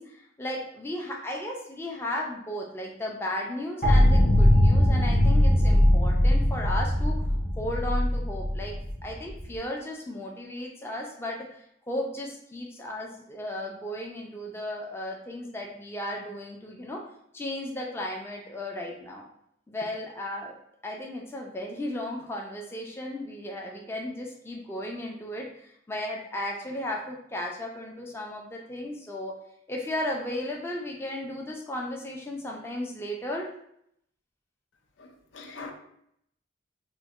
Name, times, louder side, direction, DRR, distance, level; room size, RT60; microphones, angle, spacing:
voice 1, 0.0-7.3 7.6-11.4 11.9-17.0 17.3-19.2 19.7-20.6 20.8-29.3 29.7-33.5, left 1 dB, 15° left, -1 dB, 0.3 m, -35 dB
sound 1, 3.8-9.5, left 1 dB, 45° left, 0.8 m, -21 dB
voice 2, 35.0-35.7, left 3 dB, 80° left, 4 dB, 0.5 m, -42 dB
4.4 x 2.1 x 2.4 m, 0.73 s
head